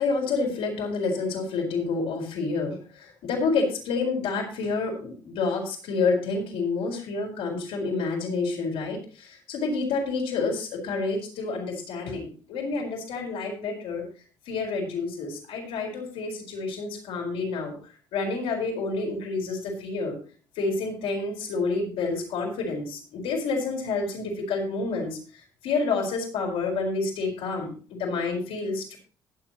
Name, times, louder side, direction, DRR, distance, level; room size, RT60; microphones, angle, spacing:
voice 1, 0.0-14.1 14.5-17.8 18.1-20.2 20.6-25.2 25.6-29.0, left 4 dB, 75° left, 0 dB, 4.5 m, -29 dB
20.0 x 7.5 x 3.0 m, 0.39 s
hypercardioid pair, 55°, 10 cm